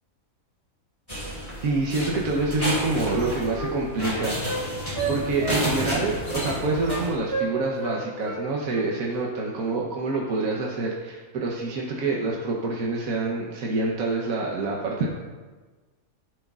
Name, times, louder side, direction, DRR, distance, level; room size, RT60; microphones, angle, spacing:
sound 1, 1.1-7.1, equal, 15° left, 3.1 m, -31 dB
voice 1, 1.6-4.8 5.1-15.1, right 3 dB, 75° right, -2 dB, 1.4 m, -27 dB
Wind instrument woodwind instrument, 2.7-4.6 5.0-6.1 6.4-7.0 7.3-8.0 8.2-8.4 8.7-9.3 9.6-9.8, right 3 dB, 45° right, 1.6 m, -32 dB
14.5 x 7.9 x 2.4 m, 1.4 s
omnidirectional pair, 1.5 m